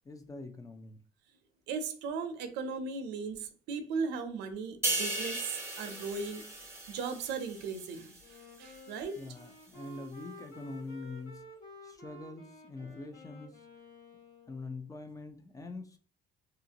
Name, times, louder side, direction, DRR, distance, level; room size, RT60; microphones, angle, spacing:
voice 1, 0.1-1.0 9.2-11.4 11.8-13.6 14.5-16.0, left 3 dB, 20° left, 0.5 m, -44 dB
voice 2, 1.7-6.4 6.9-8.1 8.6-9.2 12.8-13.0, right 5 dB, 90° right, 0.5 m, -37 dB
sound 1, 4.8-8.4 8.7-9.0, right 2 dB, 15° right, 0.8 m, -37 dB
Wind instrument woodwind instrument, 8.2-14.9, left 1 dB, 55° left, 1.4 m, -52 dB
2.8 x 2.4 x 2.8 m
cardioid pair, 110°, 17 cm